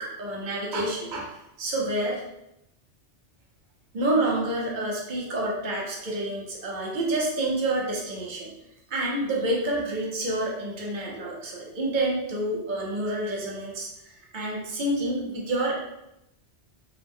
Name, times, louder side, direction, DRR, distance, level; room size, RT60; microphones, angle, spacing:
voice 1, 0.0-1.3 1.6-2.2 3.9-8.5 8.9-15.8, right 1 dB, 50° right, -2 dB, 0.8 m, -28 dB
2.4 x 2.0 x 3.6 m, 0.84 s
omnidirectional pair, 1.2 m